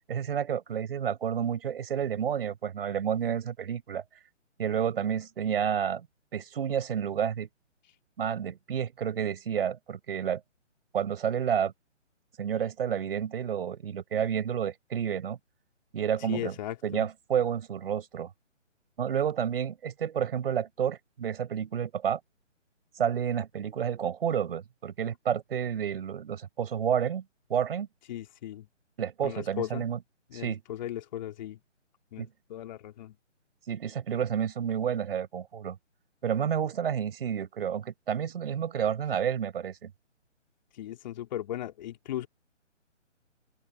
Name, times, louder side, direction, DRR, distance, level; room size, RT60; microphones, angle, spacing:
voice 1, 0.1-4.0 4.6-6.1 6.3-7.5 8.2-10.4 10.9-11.7 12.4-15.4 15.9-16.5 16.8-18.3 19.0-22.2 23.0-27.2 27.5-27.9 29.0-30.0 30.3-30.6 32.2-32.3 33.7-35.8 36.2-39.9, right 8 dB, 50° right, 6.0 m, -30 dB
voice 2, 16.3-17.0 28.1-28.7 29.2-29.9 30.3-31.6 32.1-33.1 40.8-42.3, left 12 dB, 35° left, 3.3 m, -37 dB
open air
figure-of-eight pair, 145°, 37 cm